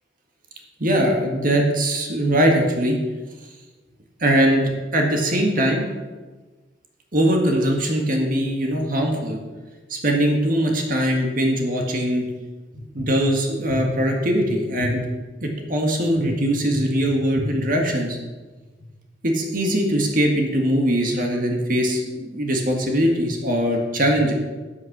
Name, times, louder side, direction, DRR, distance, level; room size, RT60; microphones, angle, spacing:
voice 1, 0.8-3.0 4.2-5.9 7.1-9.4 9.9-12.3 12.9-15.1 15.4-18.2 19.2-24.3, equal, 50° right, 1 dB, 1.7 m, -21 dB
9.5 x 8.2 x 6.0 m, 1.3 s
head